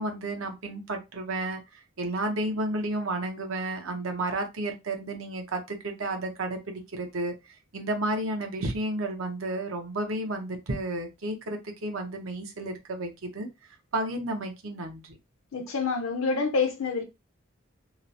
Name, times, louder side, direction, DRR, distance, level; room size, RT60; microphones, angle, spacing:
voice 1, 0.0-13.5 13.9-15.2, right 1 dB, 75° right, 0.7 m, -32 dB
voice 2, 15.5-17.0, left 4 dB, 80° left, 0.7 m, -27 dB
2.9 x 2.0 x 2.6 m
head